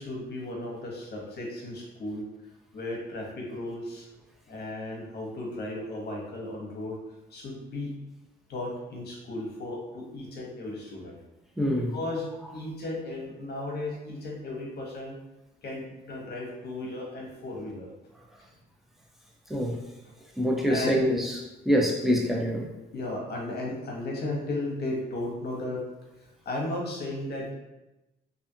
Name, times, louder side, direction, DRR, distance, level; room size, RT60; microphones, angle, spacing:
voice 1, 0.0-2.2 2.7-4.1 4.5-7.0 7.3-7.9 8.5-11.2 11.7-12.3 12.5-15.2 15.6-17.9 20.7-20.9 22.9-25.8 26.2-27.5, left 2 dB, 55° left, -2 dB, 0.9 m, -35 dB
voice 2, 11.6-11.9 19.5-19.8 20.4-21.3 21.7-22.7, equal, ahead, -1 dB, 0.5 m, -25 dB
2.5 x 2.4 x 2.7 m, 0.98 s
cardioid pair, 90°, 20 cm